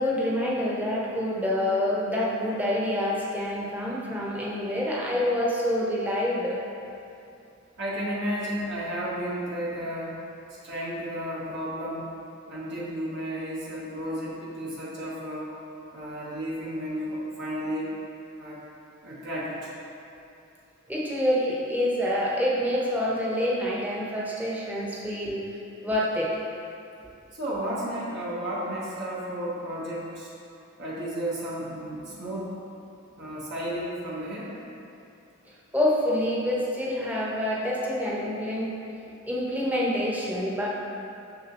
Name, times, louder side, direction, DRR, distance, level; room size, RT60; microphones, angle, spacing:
voice 1, 0.0-6.6 20.9-25.4 25.8-26.3 35.7-38.7 39.2-40.7, left 1 dB, 10° right, -5 dB, 1.0 m, -27 dB
voice 2, 7.8-10.2 10.6-12.1 12.5-15.5 15.9-17.9 18.4-18.6 19.0-19.7 27.3-30.3 30.8-32.6 33.2-34.5, equal, 55° right, -7 dB, 1.4 m, -33 dB
6.5 x 6.5 x 3.0 m, 2.7 s
head